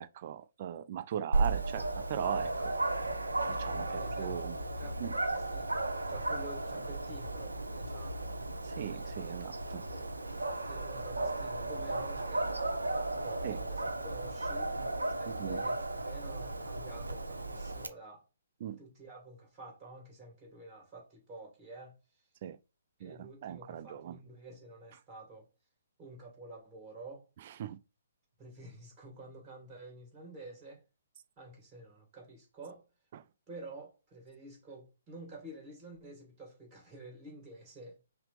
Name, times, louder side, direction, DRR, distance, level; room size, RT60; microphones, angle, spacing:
voice 1, 0.0-2.7 3.5-4.6 5.0-5.2 8.6-9.8 13.4-13.6 15.3-15.6 18.6-18.8 22.4-22.6 23.0-24.2 27.4-27.8 33.1-33.2, right 10 dB, 45° right, 0.4 m, -39 dB
Dog, 1.3-17.9, right 2 dB, 85° right, 0.6 m, -35 dB
voice 2, 3.7-5.0 5.5-5.7 6.1-8.3 9.9-10.1 10.6-12.5 13.2-14.7 15.1-18.2 18.8-22.0 23.0-25.5 26.0-27.2 28.4-30.8 31.4-32.8 33.5-38.0, right 2 dB, 25° right, 2.4 m, -49 dB
5.7 x 2.0 x 3.3 m
figure-of-eight pair, 130°, 0 cm